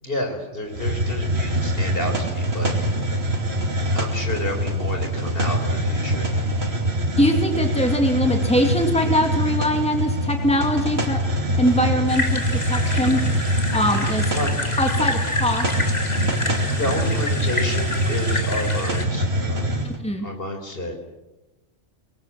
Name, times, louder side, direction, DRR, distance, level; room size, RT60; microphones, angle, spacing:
voice 1, 0.0-2.7 3.9-6.5 14.3-14.5 16.7-19.8 20.2-21.0, left 1 dB, 55° left, 3 dB, 4.5 m, -30 dB
Hiss, 0.7-20.0, right 1 dB, 60° right, 3.1 m, -24 dB
voice 2, 7.2-11.2 11.6-14.4 14.8-15.7 19.8-20.3, equal, 5° left, 3 dB, 2.6 m, -22 dB
sound 1, 12.1-19.0, left 2 dB, 35° left, 2.5 m, -29 dB
25.5 x 21.5 x 7.6 m, 1.0 s
omnidirectional pair, 1.2 m